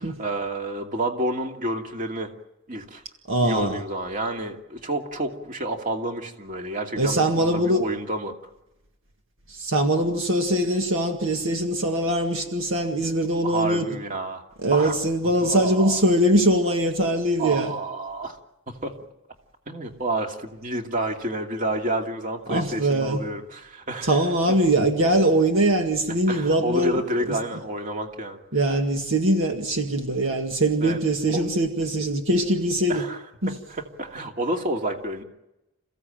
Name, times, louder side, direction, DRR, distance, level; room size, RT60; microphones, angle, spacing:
voice 1, 0.0-2.3 2.7-3.0 3.4-8.3 13.4-14.4 14.7-15.0 15.4-16.0 17.4-18.4 18.8-18.9 19.7-24.2 26.3-28.4 30.8-31.0 31.3-31.4 32.9-35.2, right 1 dB, 40° right, 2 dB, 2.6 m, -29 dB
voice 2, 3.3-3.8 6.9-7.9 9.5-13.9 14.6-17.7 22.5-23.2 24.0-27.0 27.3-27.4 28.5-33.0 33.4-33.5, right 1 dB, 65° right, 4 dB, 1.9 m, -22 dB
29.0 x 16.0 x 9.1 m, 0.92 s
head